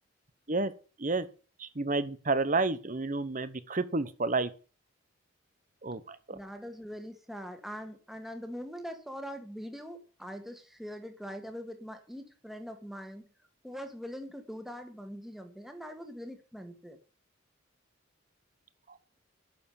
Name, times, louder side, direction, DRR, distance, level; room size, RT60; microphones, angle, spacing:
voice 1, 1.6-4.5 5.8-6.4 18.9-19.0, right 3 dB, 40° right, 1.0 m, -30 dB
voice 2, 6.3-13.3 13.6-17.0, equal, ahead, 1.9 m, -42 dB
11.5 x 7.0 x 8.5 m
head